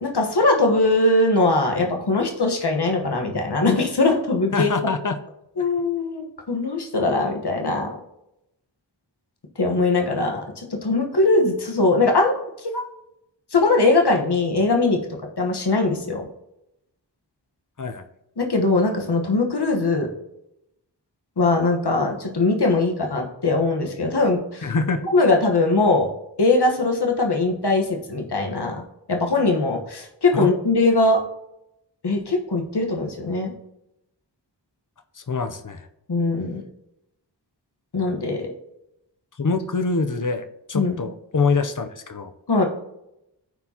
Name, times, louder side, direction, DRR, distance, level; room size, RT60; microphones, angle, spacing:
voice 1, 0.0-4.7 5.6-8.0 9.6-12.3 12.6-12.8 13.5-15.0 15.4-16.3 18.4-20.1 21.4-24.7 25.1-26.1 26.4-31.2 32.0-33.5 36.1-36.6 37.9-38.5 40.7-41.0 42.5-42.7, left 2 dB, 60° left, 3 dB, 1.3 m, -21 dB
voice 2, 4.5-5.2 17.8-18.0 24.6-25.0 30.3-30.5 35.3-35.9 39.4-42.3, left 4 dB, 45° left, 9 dB, 0.7 m, -24 dB
13.5 x 4.6 x 2.9 m, 0.85 s
wide cardioid pair, 50°, 44 cm